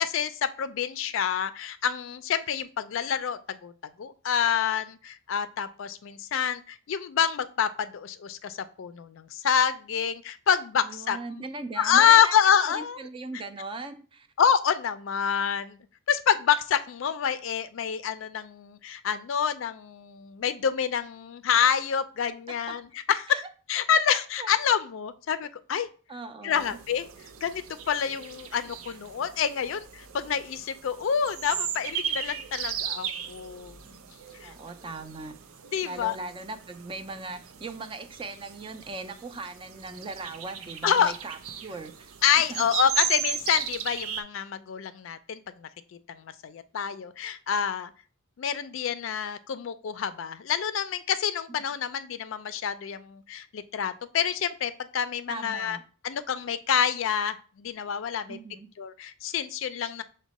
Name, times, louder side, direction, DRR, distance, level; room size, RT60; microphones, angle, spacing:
voice 1, 0.0-3.7 4.0-11.4 11.8-13.1 14.4-15.8 16.1-23.4 23.7-25.9 26.4-27.1 27.4-34.0 34.4-34.5 35.7-36.2 40.8-41.1 42.2-45.7 46.1-47.9 48.4-55.8 56.0-58.4 58.8-60.0, left 8 dB, 65° left, 12 dB, 0.4 m, -27 dB
voice 2, 10.8-12.4 12.7-14.3 22.7-22.8 23.3-23.4 24.4-24.5 26.1-26.8 34.4-35.3 35.8-42.7 55.3-55.8 58.3-58.7, right 3 dB, 25° right, 9 dB, 0.4 m, -39 dB
sound 1, 26.5-44.2, right 8 dB, 90° right, 0.5 m, -37 dB
6.1 x 2.1 x 4.0 m, 0.38 s
head